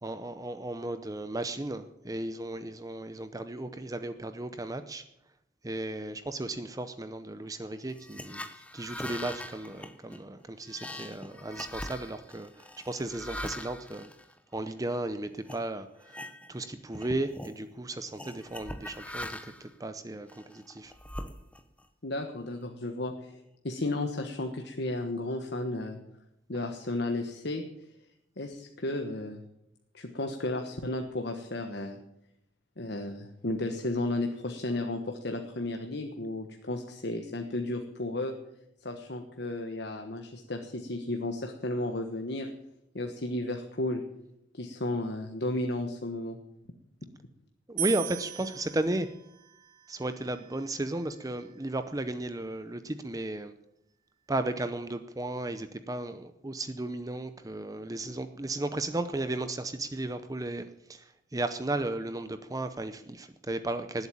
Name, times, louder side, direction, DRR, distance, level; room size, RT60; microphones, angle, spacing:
voice 1, 0.0-5.0 5.6-8.5 8.7-14.1 14.5-20.9 47.7-49.1 49.9-53.5 54.3-64.1, right 2 dB, 20° right, 10 dB, 0.7 m, -35 dB
sound 1, 7.9-14.9 15.4-15.6 16.0-16.7 16.9-17.6 18.2-19.7 20.3-21.8, left 1 dB, 5° left, 0.9 m, -42 dB
voice 2, 22.0-26.0 26.5-27.6 28.4-29.4 29.9-32.0 32.8-38.3 38.8-42.5 42.9-44.0 44.5-46.4, left 2 dB, 60° left, 4 dB, 1.3 m, -33 dB
sound 2, 47.8-51.0, right 9 dB, 45° right, 3.3 m, -39 dB
19.5 x 8.1 x 8.6 m, 0.82 s
head